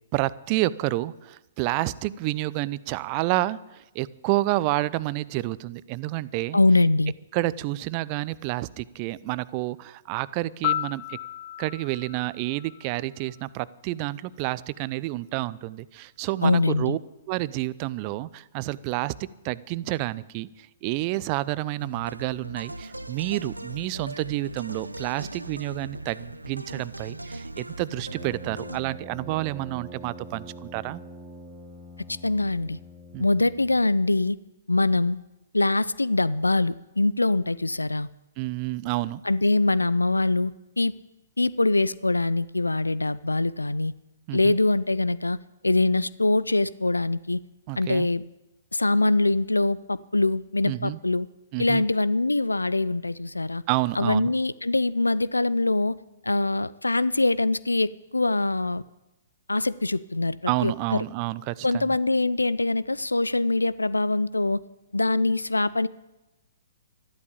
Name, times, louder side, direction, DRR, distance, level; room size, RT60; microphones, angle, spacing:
voice 1, 0.1-6.6 7.3-11.2 11.6-17.0 17.3-20.5 20.8-31.0 33.1-33.2 38.4-39.2 44.3-44.6 47.7-48.1 50.6-51.0 51.5-51.8 53.7-54.3 60.5-62.0, right 18 dB, 35° right, 19 dB, 0.6 m, -29 dB
voice 2, 6.5-7.1 16.4-17.0 32.2-32.8 33.2-34.4 34.7-35.2 35.5-38.1 39.2-40.5 40.8-40.9 41.4-43.9 44.3-45.4 45.6-47.4 47.8-48.2 48.7-51.3 51.6-53.6 54.0-56.0 56.2-58.8 59.5-61.0 61.6-64.6 64.9-65.9, left 2 dB, 85° left, 19 dB, 0.5 m, -23 dB
Piano, 10.6-13.6 21.7-21.9, left 14 dB, 35° left, 0.5 m, -33 dB
sound 1, 21.8-28.8, right 1 dB, 90° right, 0.7 m, -39 dB
Brass instrument, 28.0-33.9, equal, 10° right, 2.5 m, -44 dB
13.0 x 12.0 x 8.6 m, 0.99 s
figure-of-eight pair, 120°, 0 cm